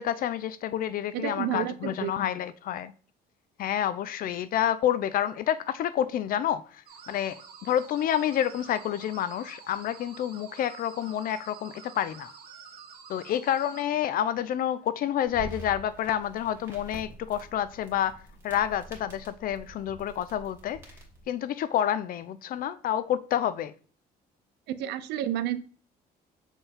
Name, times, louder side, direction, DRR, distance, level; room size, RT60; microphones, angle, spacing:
voice 1, 0.0-2.9 3.6-12.3 13.1-20.8 21.3-23.7, left 10 dB, 55° left, 0.4 m, -29 dB
voice 2, 1.1-2.1 24.7-25.7, right 11 dB, 85° right, 0.6 m, -31 dB
sound 1, 6.9-13.8, right 6 dB, 65° right, 2.2 m, -48 dB
sound 2, 15.2-21.2, right 2 dB, 15° right, 2.8 m, -46 dB
7.1 x 4.5 x 3.4 m
cardioid pair, 110°, 17 cm